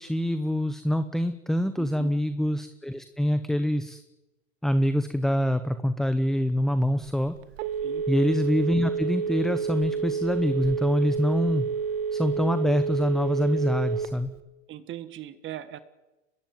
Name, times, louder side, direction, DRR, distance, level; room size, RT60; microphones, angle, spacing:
voice 1, 0.0-4.0 4.6-7.3 8.1-11.7 12.1-14.3, equal, ahead, 11 dB, 0.8 m, -25 dB
voice 2, 1.8-2.2 7.8-8.0 14.7-15.8, right 12 dB, 30° right, 12 dB, 1.5 m, -39 dB
Telephone, 7.0-14.4, right 6 dB, 55° right, 1.6 m, -29 dB
24.0 x 20.0 x 9.4 m, 1.0 s
hypercardioid pair, 125°, 37 cm